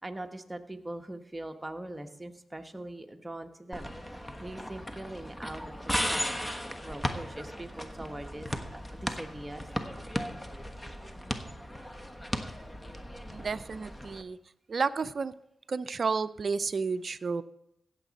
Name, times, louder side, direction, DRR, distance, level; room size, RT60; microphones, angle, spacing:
voice 1, 0.0-6.4 6.8-9.6, right 1 dB, 15° right, 5 dB, 1.3 m, -42 dB
sound 1, 3.7-14.2, equal, 15° left, 1.3 m, -36 dB
voice 2, 13.3-14.4 14.7-15.3 15.7-17.4, right 4 dB, 60° right, 14 dB, 0.5 m, -31 dB
16.5 x 7.3 x 4.2 m, 0.78 s
supercardioid pair, 45°, 0 cm